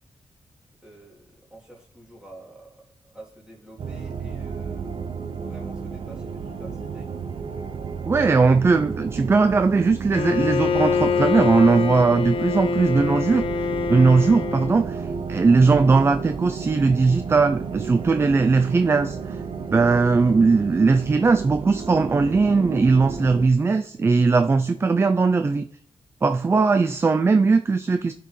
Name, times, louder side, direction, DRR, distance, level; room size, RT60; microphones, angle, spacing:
voice 1, 0.8-5.0 5.4-7.1 23.7-24.0, right 1 dB, 10° right, -5 dB, 3.1 m, -47 dB
sound 1, 3.8-23.5, right 6 dB, 70° right, 0.7 m, -32 dB
voice 2, 8.1-13.4 13.9-19.4 19.7-25.7 26.2-28.1, right 4 dB, 25° right, 9 dB, 0.3 m, -19 dB
Bowed string instrument, 10.1-14.9, left 6 dB, 65° left, 0.5 m, -25 dB
15.0 x 5.8 x 3.2 m, 0.64 s
cardioid pair, 90°, 10 cm